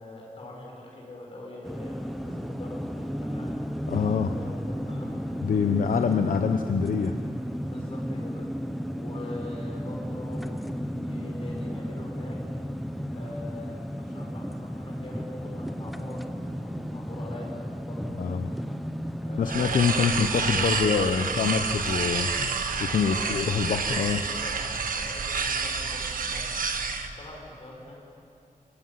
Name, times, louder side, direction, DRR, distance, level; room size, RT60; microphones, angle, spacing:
voice 1, 0.0-3.5 4.1-5.2 7.6-8.5 8.9-12.4 13.1-16.2 16.5-17.5 17.8-18.2 19.2-20.2 23.0-23.6 23.9-24.6 24.9-26.4 27.2-28.0, left 2 dB, 40° left, -2 dB, 6.7 m, -43 dB
sound 1, 1.6-19.8, equal, ahead, 0.9 m, -34 dB
voice 2, 3.9-4.3 5.4-7.1 18.2-18.5 19.4-22.5 22.8-24.2, left 6 dB, 65° left, 6 dB, 1.0 m, -25 dB
sound 2, 19.4-27.1, right 5 dB, 75° right, 1.5 m, -29 dB
29.0 x 17.0 x 9.5 m, 2.8 s
wide cardioid pair, 165°, 15 cm